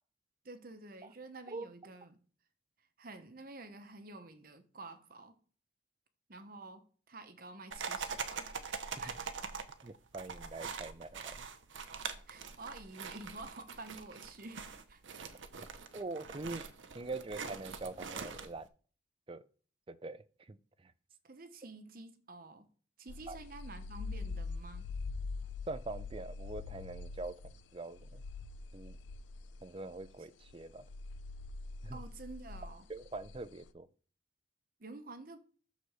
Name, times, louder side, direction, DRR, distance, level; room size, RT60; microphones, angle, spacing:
voice 1, 0.4-2.2 3.0-5.4 6.3-9.4 12.3-15.2 21.2-22.7 23.0-24.9 31.9-32.9 34.8-35.4, right 2 dB, 50° right, 0.9 m, -50 dB
sound 1, 7.7-18.7, right 5 dB, 90° right, 0.8 m, -43 dB
voice 2, 9.8-11.4 15.9-16.7 16.9-18.7 19.3-19.4 19.9-20.6 20.8-20.9 23.3-23.4 25.7-27.4 27.7-28.2 28.7-29.0 29.6-30.8 31.8-32.0 32.9-33.9, right 3 dB, 30° right, 0.4 m, -43 dB
sound 2, 23.1-30.1 30.4-33.7, left 3 dB, 75° left, 0.4 m, -44 dB
6.5 x 4.0 x 6.2 m
head